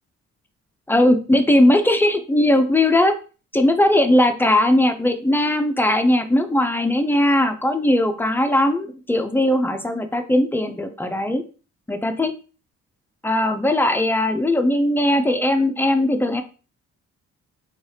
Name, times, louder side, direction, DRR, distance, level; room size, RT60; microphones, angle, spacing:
voice 1, 0.9-3.1 3.5-11.4 11.9-12.3 13.2-16.4, left 1 dB, 10° left, 7 dB, 0.3 m, -19 dB
3.1 x 2.3 x 2.7 m, 0.35 s
cardioid pair, 90°, 30 cm